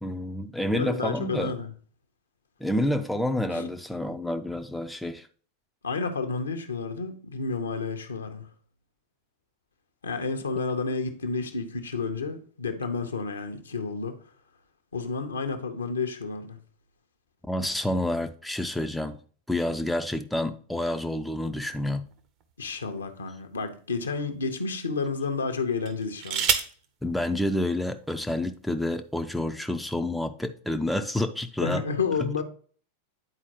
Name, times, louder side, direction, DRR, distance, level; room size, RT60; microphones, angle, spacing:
voice 1, 0.0-1.6 2.6-5.3 17.5-19.2 19.5-22.1 27.0-31.8 32.2-32.3, left 1 dB, 5° left, 0.4 m, -29 dB
voice 2, 0.7-1.7 3.5-3.7 5.8-8.5 10.0-14.2 14.9-16.6 22.6-26.5 31.6-32.4, left 4 dB, 75° left, 0.8 m, -30 dB
sound 1, 22.0-23.3 24.0-24.2 25.8-26.8 28.0-28.1 28.4-28.8, right 7 dB, 40° right, 0.7 m, -30 dB
9.8 x 4.4 x 2.9 m
figure-of-eight pair, 90°, 0 cm